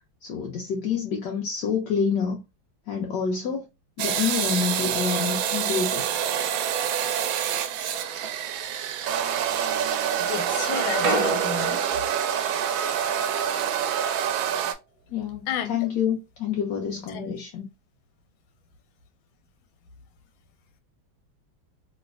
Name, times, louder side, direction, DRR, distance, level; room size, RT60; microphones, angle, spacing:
voice 1, 0.2-2.4 2.9-3.7 4.0-6.2 15.1-17.7, left 6 dB, 70° left, 1.2 m, -27 dB
sound 1, 4.0-14.7, right 9 dB, 85° right, 1.4 m, -26 dB
sound 2, 7.7-8.5 9.0-10.1 10.3-14.3, right 3 dB, 55° right, 1.2 m, -32 dB
voice 2, 10.2-11.8 15.5-15.8 17.1-17.3, left 8 dB, 85° left, 1.5 m, -32 dB
3.2 x 3.0 x 2.3 m
omnidirectional pair, 2.1 m